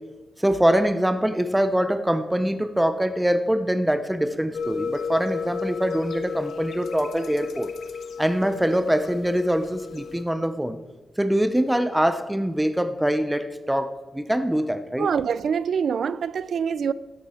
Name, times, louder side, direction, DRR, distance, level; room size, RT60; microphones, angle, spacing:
voice 1, 0.4-7.7 8.2-10.8 11.2-15.1, equal, 5° right, 0.6 m, -23 dB
sound 1, 4.5-10.2, left 5 dB, 80° left, 1.2 m, -33 dB
voice 2, 15.0-16.9, right 7 dB, 60° right, 0.4 m, -25 dB
13.5 x 10.5 x 4.3 m
wide cardioid pair, 155°, 0 cm